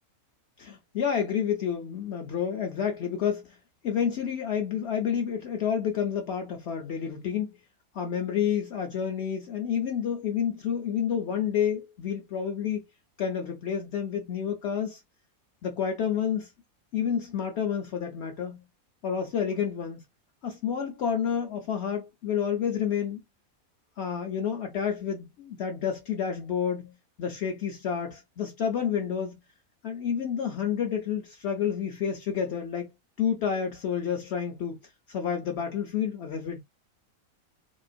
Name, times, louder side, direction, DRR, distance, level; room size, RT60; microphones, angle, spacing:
voice 1, 0.6-3.6 3.8-7.6 7.9-12.8 13.2-15.0 15.6-16.5 16.9-18.6 19.0-20.0 20.4-23.2 24.0-29.4 29.8-32.9 33.2-34.8 35.1-36.6, left 8 dB, 60° left, 0.7 m, -29 dB
3.6 x 2.4 x 2.5 m
omnidirectional pair, 1.5 m